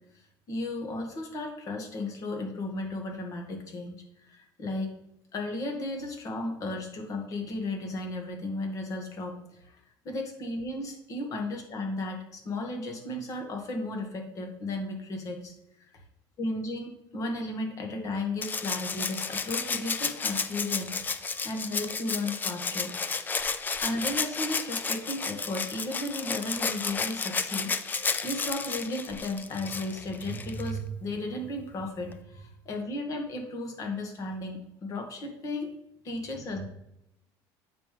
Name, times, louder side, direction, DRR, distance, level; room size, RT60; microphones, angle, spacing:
voice 1, 0.5-4.9 5.3-9.8 10.0-15.5 15.9-16.0 16.4-20.9 21.4-22.9 23.6-27.7 28.2-35.7 36.0-36.7, left 2 dB, 40° left, 2 dB, 1.8 m, -34 dB
Rattle (instrument), 18.4-30.7 32.1-32.2, left 5 dB, 20° left, 0.5 m, -32 dB
8.5 x 5.4 x 3.4 m, 0.80 s
cardioid pair, 135°, 9 cm